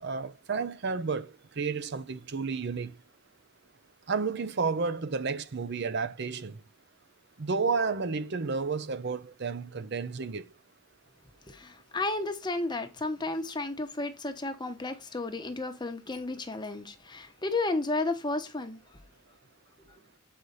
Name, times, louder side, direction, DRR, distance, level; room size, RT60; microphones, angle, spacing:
voice 1, 0.0-2.9 4.1-6.5 7.4-10.4, right 4 dB, 60° right, 0.6 m, -31 dB
voice 2, 11.5-18.8, left 2 dB, 20° left, 1.1 m, -33 dB
8.2 x 4.9 x 4.1 m
head